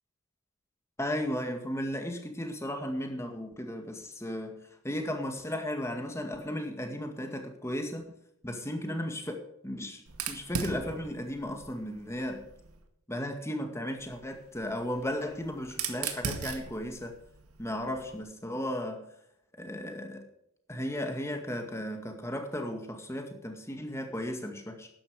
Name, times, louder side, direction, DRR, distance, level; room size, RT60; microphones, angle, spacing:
voice 1, 1.0-8.0 8.4-12.4 13.1-17.2 17.6-19.0 19.6-20.3 20.7-24.9, left 1 dB, 10° left, 2.0 m, -35 dB
Fire, 10.1-12.8 14.0-18.2, right 6 dB, 90° right, 1.9 m, -40 dB
12.5 x 10.5 x 4.9 m
head